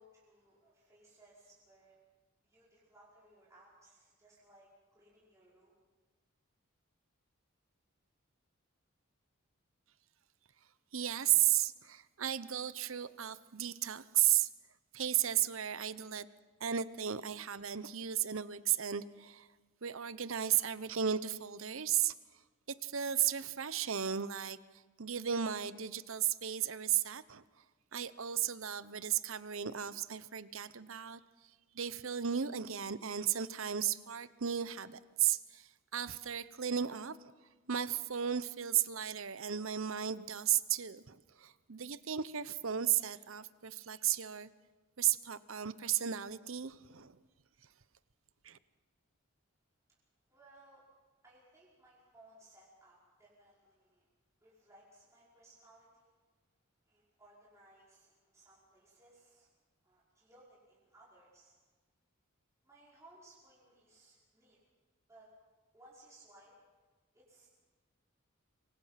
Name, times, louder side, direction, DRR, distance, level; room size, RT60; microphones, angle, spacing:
voice 1, 0.0-2.0 2.4-5.7 49.9-50.0 50.3-50.9 51.2-54.1 54.4-56.1 56.9-59.5 59.8-61.6 62.6-64.6 65.1-65.3 65.7-66.5 67.1-67.5, right 1 dB, 15° right, -7 dB, 5.4 m, -62 dB
voice 2, 10.9-14.5 14.9-16.3 16.6-19.5 19.8-22.1 22.7-27.4 27.9-31.2 31.7-37.2 37.7-44.5 45.0-47.2 48.4-48.6, right 10 dB, 70° right, 15 dB, 0.9 m, -34 dB
26.0 x 24.5 x 5.9 m, 1.3 s
head